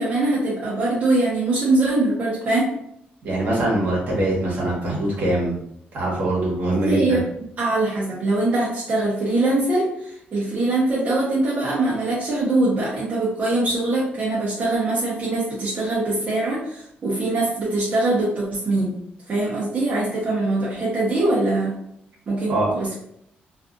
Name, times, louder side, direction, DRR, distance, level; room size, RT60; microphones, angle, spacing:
voice 1, 0.0-2.7 6.7-7.2 7.6-18.9 19.3-21.8 22.3-23.0, right 2 dB, 40° right, -7 dB, 0.8 m, -22 dB
voice 2, 3.2-5.6 5.9-7.2 22.5-22.7, right 1 dB, 60° right, -4 dB, 1.1 m, -23 dB
2.5 x 2.4 x 2.5 m, 0.73 s
cardioid pair, 145°, 4 cm